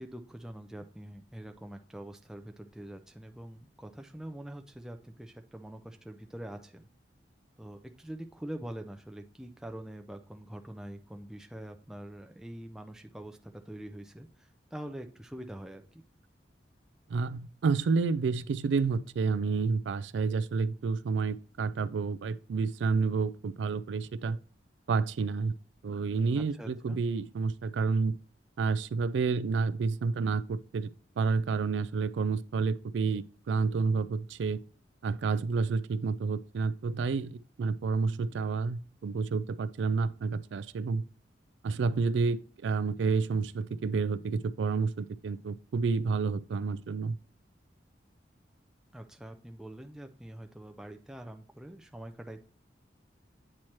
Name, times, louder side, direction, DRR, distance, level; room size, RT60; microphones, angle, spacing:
voice 1, 0.0-6.9 7.6-16.0 26.4-27.0 48.9-52.4, right 1 dB, 5° right, 0.3 m, -44 dB
voice 2, 17.1-24.4 24.9-25.5 25.8-28.2 28.6-30.9 31.2-34.6 35.0-41.0 41.6-47.2, right 4 dB, 85° right, 0.3 m, -29 dB
8.6 x 3.1 x 4.3 m
head